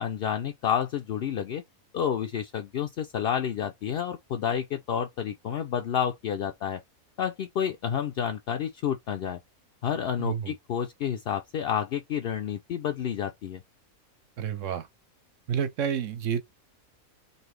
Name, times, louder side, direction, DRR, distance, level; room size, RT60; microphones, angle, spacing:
voice 1, 0.0-1.6 1.9-6.8 7.2-9.4 9.8-13.6, left 8 dB, 65° left, 0.6 m, -30 dB
voice 2, 10.2-10.5 14.4-14.9 15.5-16.4, right 8 dB, 70° right, 0.9 m, -29 dB
4.0 x 2.7 x 3.2 m
omnidirectional pair, 1.5 m